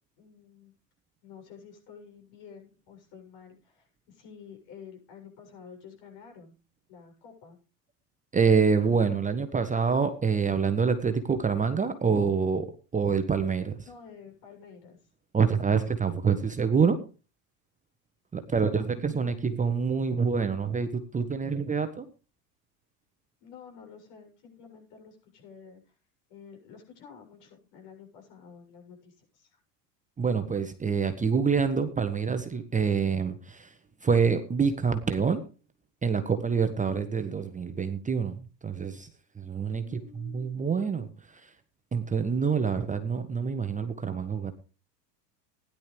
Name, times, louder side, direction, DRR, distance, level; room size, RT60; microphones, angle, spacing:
voice 1, 0.2-0.7 1.2-6.5 6.9-7.6 13.8-15.0 18.5-19.7 23.4-26.0 26.3-29.6 39.8-40.6, left 6 dB, 55° left, 2 dB, 7.7 m, -50 dB
voice 2, 8.3-13.8 15.3-17.0 18.3-22.1 30.2-33.7 34.0-35.4 36.0-39.1 39.4-40.0 40.3-41.5 41.9-44.5, right 5 dB, 15° right, 8 dB, 1.2 m, -26 dB
16.5 x 11.0 x 3.4 m, 0.34 s
hypercardioid pair, 100°, 50 cm